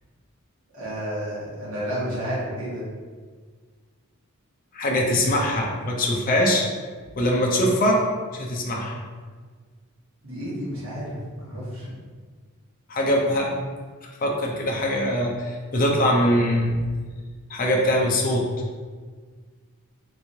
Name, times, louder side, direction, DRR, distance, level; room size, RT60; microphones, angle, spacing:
voice 1, 0.7-2.8 10.2-11.9, equal, 65° right, -8 dB, 1.4 m, -31 dB
voice 2, 4.7-6.6 7.1-8.0 8.3-9.0 12.9-13.5 14.0-16.8 17.5-18.4, left 1 dB, 40° left, -1 dB, 0.5 m, -22 dB
3.4 x 3.2 x 2.7 m, 1.5 s
head